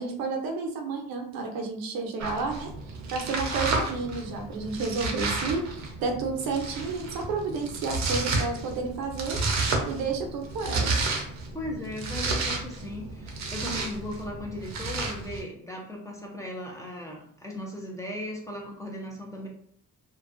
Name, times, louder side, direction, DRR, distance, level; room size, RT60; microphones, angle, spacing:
voice 1, 0.0-2.7 3.1-9.4 9.8-11.0, right 4 dB, 90° right, 2 dB, 0.6 m, -31 dB
Domestic sounds home sounds, 2.2-15.4, right 3 dB, 50° right, 0.6 m, -31 dB
voice 2, 11.5-19.5, left 1 dB, 10° left, -2 dB, 0.5 m, -37 dB
2.5 x 2.2 x 2.4 m, 0.62 s
cardioid pair, 115°, 34 cm